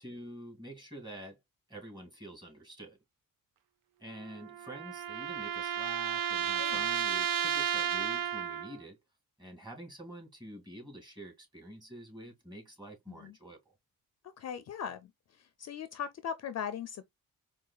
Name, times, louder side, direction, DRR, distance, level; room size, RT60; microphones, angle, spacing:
voice 1, 0.0-1.4 1.7-3.0 4.0-9.0 9.4-13.6, right 1 dB, 15° right, 2.1 m, -47 dB
sound 1, 4.1-8.8, right 9 dB, 75° right, 0.5 m, -33 dB
voice 2, 14.4-17.0, left 8 dB, 50° left, 0.5 m, -39 dB
4.7 x 2.4 x 2.2 m
cardioid pair, 100°, 34 cm